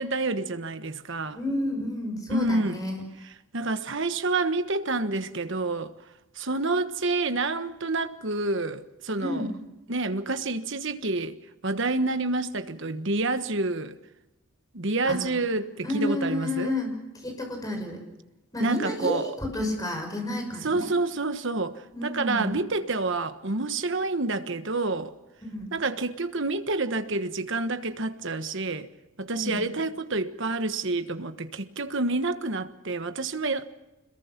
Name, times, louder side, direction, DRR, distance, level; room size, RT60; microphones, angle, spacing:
voice 1, 0.0-1.4 2.3-2.8 3.2-5.9 6.3-9.5 9.9-11.4 11.6-14.0 14.7-16.7 18.6-19.3 20.6-25.1 25.7-28.9 29.2-33.6, right 3 dB, 55° right, 1.4 m, -28 dB
voice 2, 1.4-3.0 9.2-9.5 15.1-15.2 15.8-17.0 17.2-18.0 18.5-20.9 21.9-22.6 25.5-25.7 29.3-29.6, left 1 dB, 15° left, 6.0 m, -30 dB
26.5 x 21.5 x 6.0 m
head